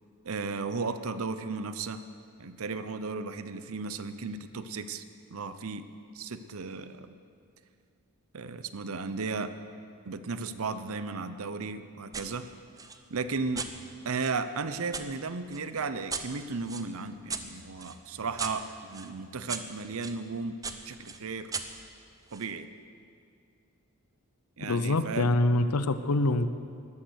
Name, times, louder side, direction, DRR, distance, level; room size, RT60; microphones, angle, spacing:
voice 1, 0.2-2.0 2.4-5.0 5.3-5.8 6.1-7.1 8.3-9.5 10.1-12.4 13.1-13.7 14.0-20.6 20.8-21.5 22.3-22.7 24.6-25.3, right 4 dB, 70° right, 11 dB, 0.7 m, -35 dB
sound 1, 12.1-12.3 12.8-15.1 15.5-20.2 20.6-22.5, right 5 dB, 15° right, 0.6 m, -40 dB
voice 2, 24.6-26.5, left 2 dB, 85° left, 12 dB, 0.7 m, -25 dB
13.5 x 12.0 x 6.4 m, 2.4 s
head